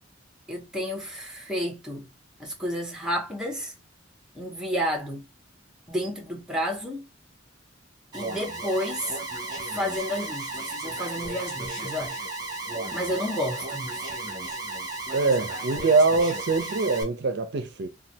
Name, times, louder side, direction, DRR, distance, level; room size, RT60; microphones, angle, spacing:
voice 1, 0.5-2.1 2.4-3.7 4.3-5.3 5.9-7.1 8.1-9.2 9.7-12.2 12.9-14.0, equal, 5° right, 0.8 m, -31 dB
Alarm, 8.1-17.0, right 2 dB, 20° right, 1.3 m, -34 dB
voice 2, 15.1-17.9, right 3 dB, 60° right, 0.5 m, -23 dB
3.2 x 2.3 x 2.7 m
head